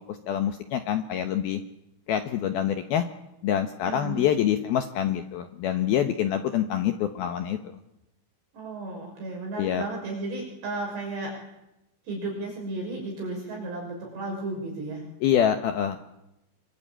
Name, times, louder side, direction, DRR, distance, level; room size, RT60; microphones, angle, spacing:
voice 1, 0.1-1.6 2.1-3.0 3.4-7.6 9.6-9.8 15.2-16.0, left 10 dB, 80° left, 7 dB, 2.2 m, -26 dB
voice 2, 3.8-4.2 8.5-11.3 12.1-15.0, right 2 dB, 55° right, 0 dB, 8.0 m, -34 dB
27.0 x 24.0 x 8.9 m, 0.89 s
omnidirectional pair, 5.9 m